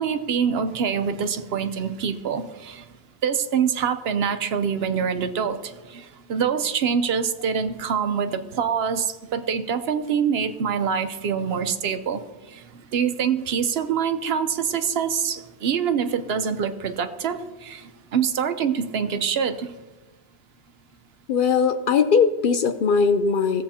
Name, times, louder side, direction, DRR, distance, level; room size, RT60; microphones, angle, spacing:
voice 1, 0.0-2.8 3.2-12.6 12.9-19.8, right 7 dB, 65° right, 9 dB, 0.9 m, -25 dB
voice 2, 21.3-23.6, left 5 dB, 60° left, 9 dB, 0.6 m, -20 dB
17.0 x 7.4 x 2.8 m, 1.2 s
omnidirectional pair, 1.1 m